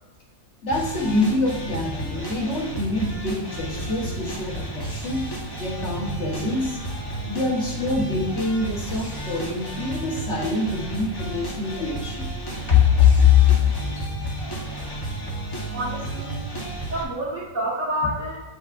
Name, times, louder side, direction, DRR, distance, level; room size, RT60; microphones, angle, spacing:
voice 1, 0.6-5.3 5.6-6.8 7.2-12.3 12.7-14.1 14.4-14.7, left 5 dB, 50° left, -2 dB, 1.5 m, -23 dB
sound 1, 0.7-17.0, right 1 dB, 20° left, 0.9 m, -32 dB
voice 2, 15.7-16.4 16.9-18.4, right 1 dB, 60° right, -10 dB, 1.9 m, -28 dB
8.2 x 5.6 x 2.5 m, 1.2 s
omnidirectional pair, 1.5 m